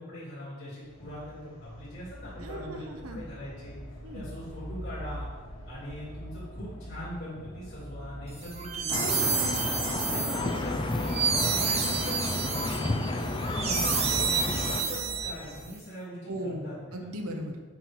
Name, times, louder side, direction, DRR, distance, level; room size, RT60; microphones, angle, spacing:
voice 1, 0.0-3.8 4.1-5.3 5.7-9.3 10.0-17.1, equal, 55° left, -10 dB, 2.7 m, -41 dB
sound 1, 0.8-15.6, equal, 70° left, 2.4 m, -43 dB
voice 2, 2.4-3.2 4.0-4.3 8.9-9.6 10.4-10.5 16.3-17.6, right 1 dB, 80° right, 4 dB, 1.0 m, -37 dB
sound 2, 8.4-15.7, right 5 dB, 30° right, 0.8 m, -30 dB
sound 3, 8.9-14.8, left 2 dB, 20° left, 0.4 m, -31 dB
7.5 x 5.5 x 4.7 m, 1.3 s
head